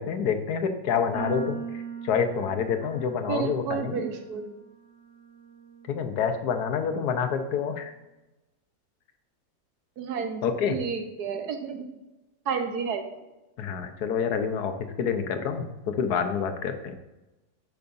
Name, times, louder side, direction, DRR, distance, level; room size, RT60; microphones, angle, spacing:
voice 1, 0.0-1.6 2.0-4.0 5.9-7.9 10.4-10.8 13.6-16.9, left 6 dB, 90° left, 8 dB, 1.3 m, -27 dB
sound 1, 1.1-7.5, right 6 dB, 40° left, 1.8 m, -41 dB
voice 2, 3.3-4.5 10.0-10.4 10.7-11.9 12.5-13.1, right 6 dB, 90° right, 5 dB, 1.4 m, -31 dB
10.5 x 5.7 x 2.6 m, 1.0 s
omnidirectional pair, 1.6 m